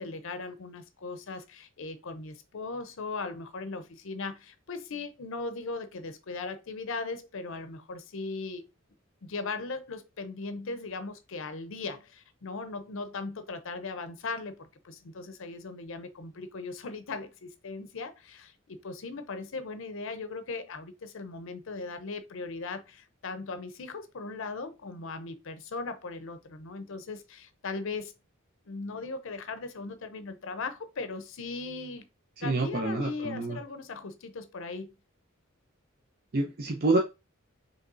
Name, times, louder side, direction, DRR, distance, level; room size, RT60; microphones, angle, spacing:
voice 1, 0.0-8.7 9.2-28.1 28.7-32.1 32.4-34.9, left 3 dB, 65° left, 0.6 m, -38 dB
voice 2, 32.4-33.6 36.3-37.0, right 2 dB, 45° right, 0.6 m, -27 dB
5.3 x 3.3 x 2.6 m
head